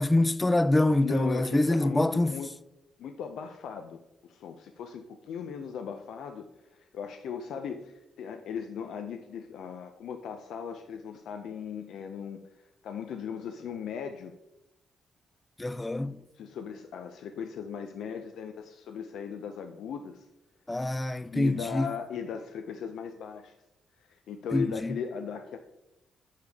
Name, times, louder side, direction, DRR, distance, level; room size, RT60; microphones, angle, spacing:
voice 1, 0.0-2.3 15.6-16.2 20.7-21.9 24.5-25.0, left 1 dB, 15° left, 0.3 m, -25 dB
voice 2, 0.9-2.5 3.0-6.4 6.7-14.3 16.3-20.3 21.3-23.5 24.0-25.6, left 7 dB, 85° left, 0.5 m, -38 dB
8.7 x 6.5 x 3.5 m
cardioid pair, 90°, 0 cm